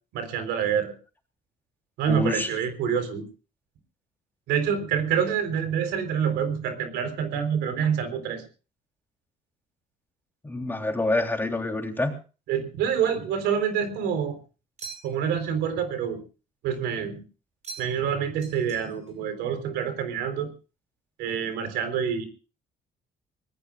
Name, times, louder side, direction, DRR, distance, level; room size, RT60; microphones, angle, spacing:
voice 1, 0.1-0.9 2.0-3.2 4.5-8.4 12.5-14.4 15.0-16.2 16.6-17.2 17.8-20.5 21.2-22.3, right 8 dB, 85° right, 8 dB, 3.8 m, -27 dB
voice 2, 2.1-2.5 10.4-12.1, left 2 dB, 10° left, 3 dB, 3.4 m, -27 dB
sound 1, 14.8-15.4 17.6-18.1 18.4-19.2, right 4 dB, 40° right, 6.4 m, -43 dB
24.5 x 19.5 x 2.4 m, 0.35 s
cardioid pair, 110°, 17 cm